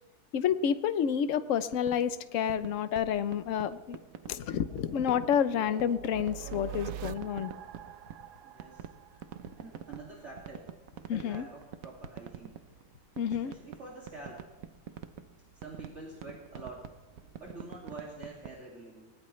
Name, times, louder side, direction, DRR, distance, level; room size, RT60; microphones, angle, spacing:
voice 1, 0.3-4.0 4.3-7.5 11.1-11.4 13.2-13.5, left 8 dB, 60° left, 12 dB, 1.0 m, -29 dB
sound 1, 1.6-4.3 4.8-5.5 5.8-8.3 8.6-18.6, right 8 dB, 65° right, 1.2 m, -46 dB
sound 2, 3.2-10.0, right 10 dB, 80° right, 1.2 m, -46 dB
voice 2, 8.4-8.9 9.6-10.7 11.0-12.8 13.4-14.4 15.5-16.9 17.4-19.1, right 3 dB, 45° right, -4 dB, 2.7 m, -47 dB
19.5 x 19.5 x 3.2 m, 1.1 s
omnidirectional pair, 1.7 m